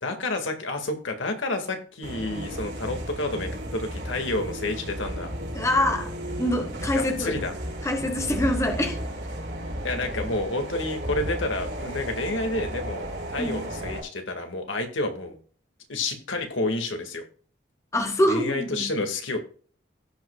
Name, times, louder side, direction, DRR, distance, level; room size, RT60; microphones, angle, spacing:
voice 1, 0.0-5.3 6.9-7.6 9.8-15.4 15.9-17.2 18.3-19.4, left 2 dB, 85° left, 1.9 m, -29 dB
sound 1, 2.0-14.0, equal, 75° right, 4.7 m, -34 dB
voice 2, 5.5-7.3 7.8-9.0 13.4-13.7 17.9-18.9, left 1 dB, 15° left, 1.0 m, -25 dB
16.5 x 5.5 x 2.3 m
head